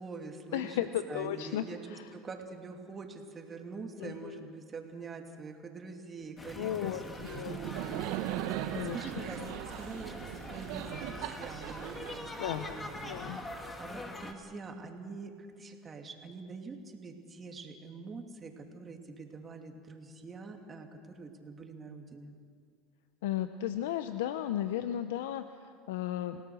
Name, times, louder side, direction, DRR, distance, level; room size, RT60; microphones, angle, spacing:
voice 1, 0.0-0.8 1.1-8.6 8.9-22.3, right 4 dB, 25° right, 3 dB, 2.8 m, -45 dB
voice 2, 0.5-2.1 4.0-4.4 6.5-7.6 8.7-9.6 12.4-12.8 13.0-13.4 23.2-26.4, left 11 dB, 85° left, 10 dB, 0.8 m, -35 dB
sound 1, 6.4-14.3, left 2 dB, 15° left, 2.3 m, -44 dB
Laughter, 7.2-13.0, right 13 dB, 70° right, 1.0 m, -39 dB
29.5 x 18.0 x 6.4 m, 2.2 s
supercardioid pair, 115°, 0 cm